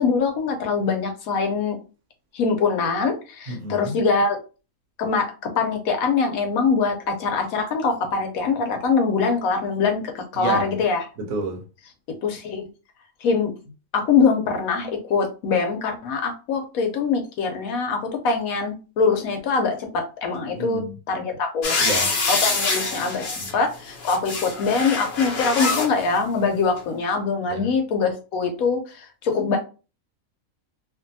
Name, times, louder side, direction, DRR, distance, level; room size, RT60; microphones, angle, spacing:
voice 1, 0.0-1.8 2.3-4.4 5.0-11.0 12.2-12.7 13.2-13.5 13.9-20.8 21.1-21.8 22.3-29.6, left 4 dB, 80° left, 1.1 m, -23 dB
voice 2, 3.5-4.0 10.3-10.7 11.2-11.6 20.5-20.9 21.8-22.1 23.4-23.5 27.5-27.7, right 2 dB, 75° right, 1.1 m, -30 dB
sound 1, 21.6-23.5 23.9-25.9 26.8-26.9, left 3 dB, 55° left, 0.9 m, -25 dB
2.6 x 2.5 x 2.6 m
omnidirectional pair, 1.5 m